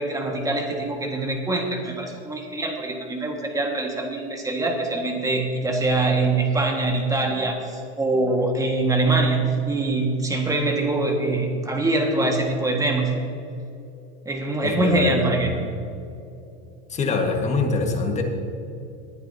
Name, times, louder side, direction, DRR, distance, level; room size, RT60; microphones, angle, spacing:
voice 1, 0.0-13.1 14.2-15.5, right 2 dB, 10° right, 2 dB, 1.6 m, -23 dB
voice 2, 14.6-15.1 15.5-15.7 16.9-18.2, left 4 dB, 20° left, 3 dB, 1.5 m, -24 dB
19.5 x 10.0 x 2.8 m, 2.7 s
supercardioid pair, 135°, 34 cm